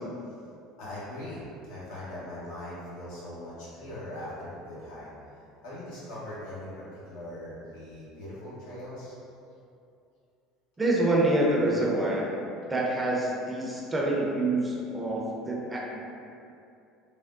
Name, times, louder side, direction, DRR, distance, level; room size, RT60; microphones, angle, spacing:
voice 1, 0.8-5.1 5.6-9.1, left 1 dB, 80° left, -9 dB, 1.0 m, -40 dB
voice 2, 10.8-12.3 12.7-16.0, right 1 dB, 15° right, -3 dB, 0.5 m, -26 dB
3.4 x 2.1 x 2.5 m, 2.6 s
supercardioid pair, 90°, 0 cm